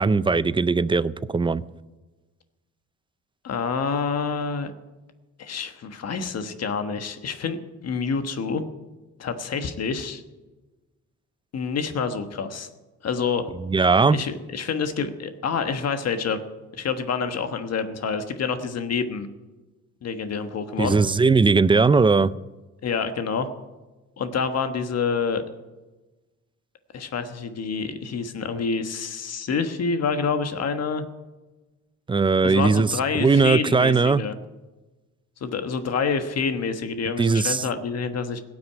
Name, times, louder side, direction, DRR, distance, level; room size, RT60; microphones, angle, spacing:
voice 1, 0.0-1.6 13.7-14.2 20.8-22.3 32.1-34.2 37.2-37.6, right 4 dB, 15° right, 18 dB, 0.4 m, -19 dB
voice 2, 3.4-4.7 5.4-7.6 7.8-8.6 9.2-10.2 11.5-12.7 13.0-13.5 14.1-16.4 16.7-19.3 20.0-21.0 22.8-23.5 24.2-25.4 26.9-31.0 32.4-34.3 35.4-38.4, left 5 dB, 55° left, 8 dB, 1.3 m, -27 dB
17.0 x 6.1 x 9.7 m, 1.2 s
cardioid pair, 90°, 30 cm